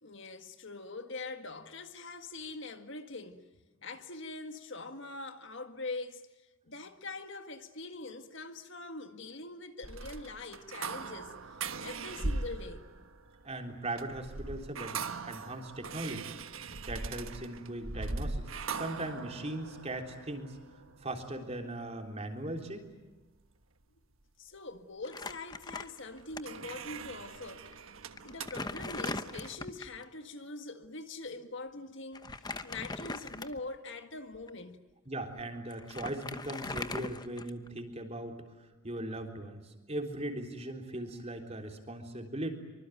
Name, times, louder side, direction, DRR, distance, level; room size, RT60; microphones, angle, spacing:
voice 1, 0.0-3.5 3.8-12.9 19.0-19.3 24.4-27.7 28.2-34.8, left 3 dB, 60° left, 1.8 m, -43 dB
sound 1, 9.8-22.1 25.9-29.6, right 3 dB, 70° right, 1.4 m, -41 dB
voice 2, 13.4-16.3 16.8-18.4 18.7-20.6 21.0-22.9 35.1-42.5, right 1 dB, 30° right, 3.6 m, -39 dB
Crumpling crinkling, 25.0-26.4 26.7-26.8 27.7-27.8 28.2-30.0 32.1-33.8 34.3-34.5 35.4-35.5 35.7-37.8, left 3 dB, 20° left, 1.0 m, -40 dB
25.5 x 25.0 x 9.2 m
head